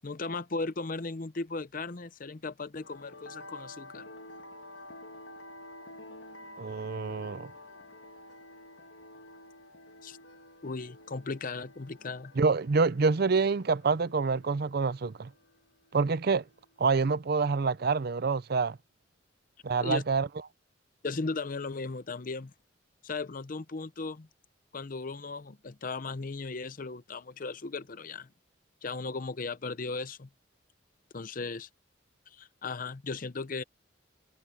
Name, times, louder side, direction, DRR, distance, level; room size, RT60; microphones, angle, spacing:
voice 1, 0.0-4.1 10.0-10.2 10.6-12.3 19.8-20.0 21.0-22.5 23.0-24.3 24.7-28.3 28.8-30.3 31.1-31.7 32.3-33.6, left 3 dB, 45° left, 0.7 m, -36 dB
sound 1, 2.8-16.9, left 1 dB, 75° left, 1.6 m, -50 dB
voice 2, 6.6-7.5 12.4-15.3 15.9-16.4 16.8-18.8 19.6-20.3, right 4 dB, 55° right, 0.5 m, -27 dB
head